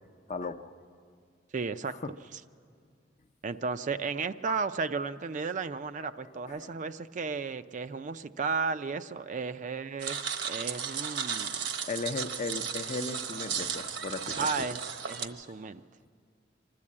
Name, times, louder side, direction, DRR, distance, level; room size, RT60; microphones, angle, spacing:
voice 1, 0.3-0.7 1.9-2.1 4.5-4.6 6.5-6.7 11.4-14.5, left 3 dB, 40° left, 9 dB, 0.7 m, -37 dB
voice 2, 1.5-2.0 3.4-11.6 14.3-15.8, right 5 dB, 45° right, 11 dB, 0.4 m, -34 dB
sound 1, 10.0-15.3, right 7 dB, 75° right, 1.1 m, -35 dB
25.5 x 12.5 x 8.5 m, 2.2 s
head